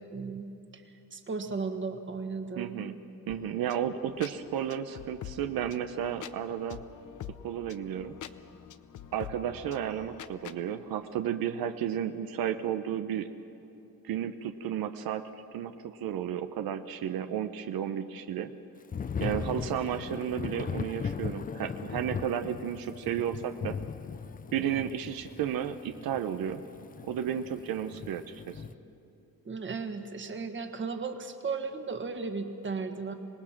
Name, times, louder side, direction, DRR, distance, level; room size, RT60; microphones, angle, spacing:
voice 1, 0.1-0.5 0.7-2.8 29.4-33.1, right 4 dB, 35° right, 6 dB, 1.6 m, -35 dB
voice 2, 2.6-3.0 3.3-6.8 7.4-8.1 9.1-13.3 14.0-15.2 15.5-18.5 19.2-23.8 24.5-26.6 27.0-28.6, right 9 dB, 80° right, 8 dB, 0.9 m, -33 dB
sound 1, 3.3-10.6, left 10 dB, 55° left, 0.8 m, -46 dB
Thunder / Rain, 18.9-28.7, left 6 dB, 25° left, 0.5 m, -38 dB
26.0 x 19.5 x 5.9 m, 2.8 s
cardioid pair, 130°, 35 cm